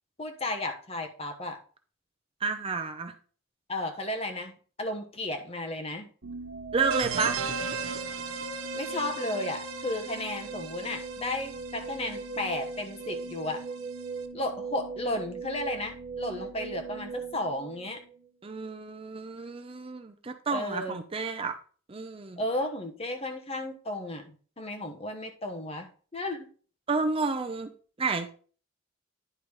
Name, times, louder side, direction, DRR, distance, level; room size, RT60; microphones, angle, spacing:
voice 1, 0.2-1.6 3.7-6.1 8.7-13.6 14.3-18.0 20.5-21.0 22.4-26.5, left 1 dB, 30° left, 4 dB, 1.2 m, -34 dB
voice 2, 2.4-3.1 6.7-7.4 18.4-21.6 21.9-22.4 26.9-27.7 28.0-28.3, right 4 dB, 30° right, 7 dB, 0.6 m, -30 dB
sound 1, 6.2-18.3, right 4 dB, 65° right, 1.2 m, -39 dB
sound 2, 6.9-14.2, right 6 dB, 85° right, 1.1 m, -38 dB
10.5 x 4.0 x 4.8 m, 0.41 s
head